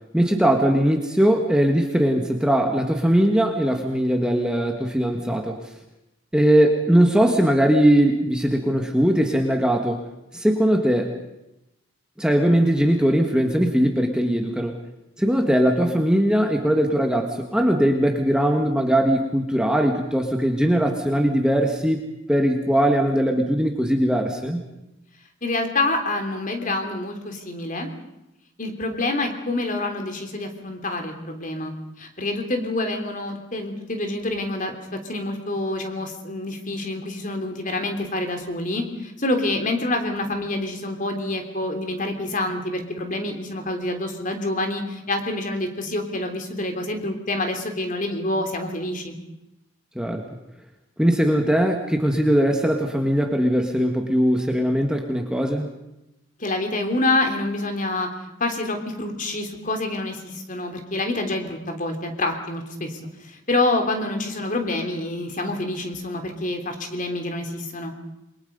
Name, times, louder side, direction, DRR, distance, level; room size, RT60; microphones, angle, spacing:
voice 1, 0.1-5.7 6.3-10.0 10.3-11.1 12.2-14.8 15.2-24.6 50.0-50.3 51.0-55.7, equal, 5° right, 3 dB, 1.7 m, -20 dB
voice 2, 25.4-27.9 28.6-49.2 56.4-58.1 58.4-67.9, left 2 dB, 40° left, 5 dB, 3.4 m, -27 dB
29.0 x 23.0 x 5.4 m, 0.91 s
head